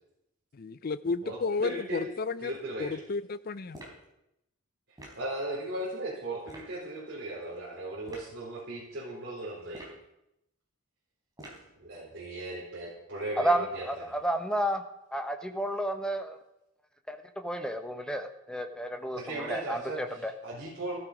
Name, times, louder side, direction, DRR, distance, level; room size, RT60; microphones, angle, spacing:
voice 1, 0.5-2.5 2.8-3.8, left 4 dB, 45° left, 0.5 m, -32 dB
voice 2, 1.2-2.1 2.4-3.0 5.2-9.9 11.8-13.9 19.2-21.0, right 2 dB, 55° right, 4.0 m, -37 dB
sound 1, 3.7-4.1 5.0-5.3 6.4-6.7 8.0-8.3 9.7-10.1 11.4-11.7, right 1 dB, 20° right, 3.8 m, -47 dB
voice 3, 13.4-14.8 15.1-16.4 17.1-17.2 17.4-20.3, right 1 dB, 5° left, 1.1 m, -31 dB
15.5 x 13.5 x 5.1 m
head